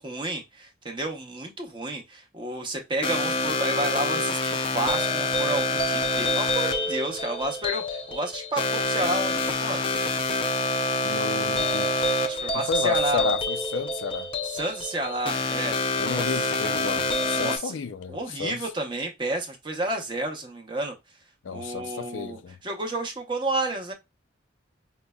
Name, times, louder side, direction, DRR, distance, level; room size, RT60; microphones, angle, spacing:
voice 1, 0.0-9.8 12.3-13.3 14.4-15.8 16.1-16.5 17.4-17.8 18.1-21.0 21.5-23.9, right 2 dB, 25° right, 0.7 m, -31 dB
sound 1, 3.0-17.6, left 2 dB, 30° left, 0.4 m, -27 dB
voice 2, 11.0-12.0 12.5-14.3 16.0-18.6 21.4-22.6, left 5 dB, 90° left, 0.4 m, -32 dB
5.1 x 2.1 x 2.2 m
head